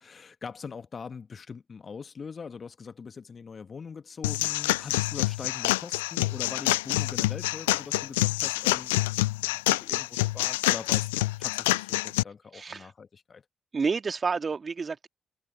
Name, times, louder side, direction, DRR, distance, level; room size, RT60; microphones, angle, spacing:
voice 1, 0.0-8.9 9.6-11.1 11.4-13.4, left 5 dB, 45° left, 1.6 m, -42 dB
sound 1, 4.2-12.2, left 20 dB, 80° left, 0.4 m, -27 dB
voice 2, 12.5-12.9 13.7-15.1, right 5 dB, 40° right, 2.1 m, -29 dB
hypercardioid pair, 40°, 0 cm